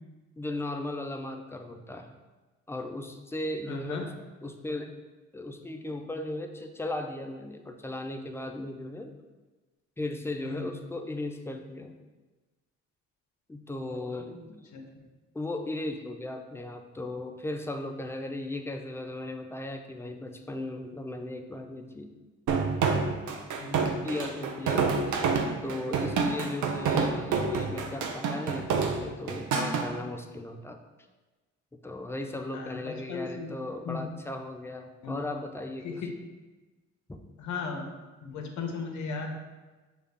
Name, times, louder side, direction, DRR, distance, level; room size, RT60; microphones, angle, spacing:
voice 1, 0.4-2.1 2.7-4.1 4.4-4.9 5.3-9.2 10.0-11.9 13.5-14.7 15.3-22.1 24.0-25.1 25.6-30.8 31.7-36.0 37.1-37.2, left 2 dB, 10° left, 5 dB, 0.4 m, -36 dB
voice 2, 3.7-4.1 10.4-10.7 14.7-14.8 23.6-23.8 24.8-25.2 32.5-33.5 33.8-34.1 35.0-35.2 35.8-36.1 37.4-37.9 38.2-39.3, left 5 dB, 70° left, 3 dB, 0.8 m, -36 dB
sound 1, 22.5-29.9, right 5 dB, 75° right, 0.6 m, -27 dB
6.7 x 2.4 x 3.3 m, 1.2 s
cardioid pair, 90°, 30 cm